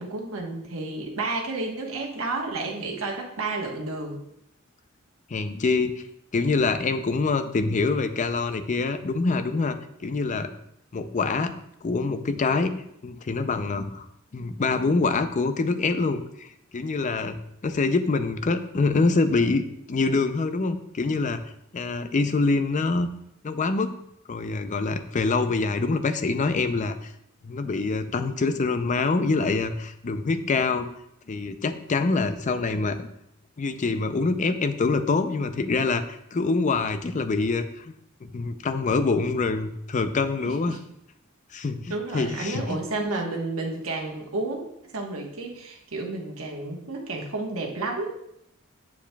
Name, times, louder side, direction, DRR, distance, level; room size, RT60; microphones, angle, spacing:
voice 1, 0.0-4.2 40.4-40.8 41.9-44.7 44.9-48.2, right 2 dB, 80° right, 0 dB, 1.2 m, -31 dB
voice 2, 5.3-6.0 6.3-10.5 10.9-11.5 11.8-12.7 13.0-14.1 14.3-21.4 21.7-23.1 23.4-23.9 24.3-27.1 27.4-30.9 31.3-33.1 33.6-37.9 38.2-40.8 41.5-42.8, left 3 dB, 35° left, 10 dB, 0.4 m, -25 dB
7.1 x 7.1 x 2.3 m, 0.75 s
head